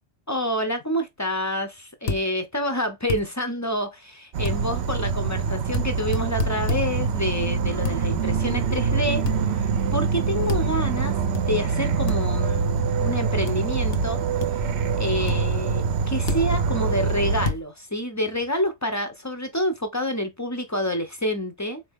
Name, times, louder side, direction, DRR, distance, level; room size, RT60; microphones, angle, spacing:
voice 1, 0.3-9.3 9.6-9.7 9.9-11.2 11.5-14.3 15.0-21.8, equal, 25° left, 0.4 m, -28 dB
sound 1, 2.1-2.2 3.1-3.2 4.4-4.6 5.7-5.9 6.1-6.8 7.8-8.0 9.3-9.4 10.5-10.7 11.3-11.4 12.1-12.2 13.5-13.6 13.9-14.0 14.4-14.7 15.3-15.4 16.3-16.5 17.4-17.6, left 5 dB, 60° left, 0.9 m, -28 dB
Insect / Frog, 4.3-17.5, right 5 dB, 70° right, 0.8 m, -25 dB
3.9 x 2.7 x 3.5 m
omnidirectional pair, 1.2 m